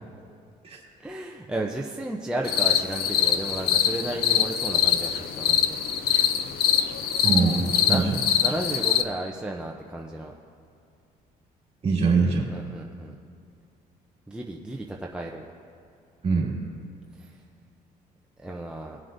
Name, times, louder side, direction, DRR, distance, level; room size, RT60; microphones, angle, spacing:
voice 1, 1.0-5.8 7.8-10.3 12.5-13.2 14.3-15.5 17.2-17.3 18.4-19.0, right 1 dB, 5° right, -1 dB, 0.6 m, -33 dB
sound 1, 2.4-9.0, left 9 dB, 65° left, 0.6 m, -24 dB
voice 2, 7.2-8.2 11.8-12.5 16.2-16.5, right 4 dB, 35° right, -3 dB, 2.2 m, -23 dB
21.0 x 7.5 x 2.6 m, 2.4 s
cardioid pair, 110°, 17 cm